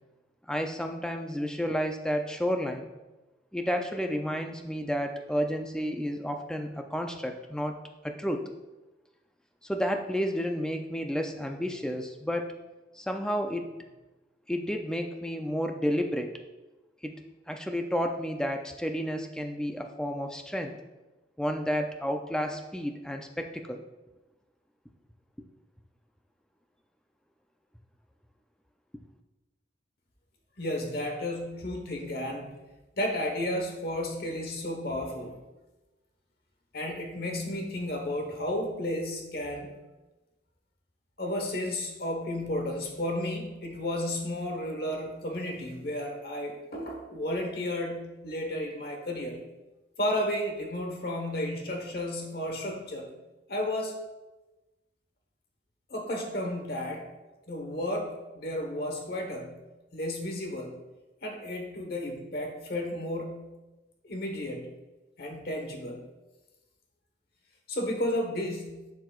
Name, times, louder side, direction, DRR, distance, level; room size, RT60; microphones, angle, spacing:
voice 1, 0.5-2.9 3.5-7.7 8.0-8.5 9.6-12.6 12.9-13.7 14.5-16.4 17.0-17.1 17.5-20.7 21.4-23.8, equal, 5° left, 4 dB, 0.4 m, -31 dB
voice 2, 30.6-32.5 33.0-35.4 36.7-39.8 41.2-49.4 50.0-53.1 53.5-54.0 55.9-57.0 57.5-59.6 59.9-60.8 61.2-63.5 64.0-64.7 65.2-66.0 67.7-68.9, left 1 dB, 55° left, 2 dB, 1.1 m, -33 dB
11.5 x 4.7 x 2.4 m, 1.1 s
head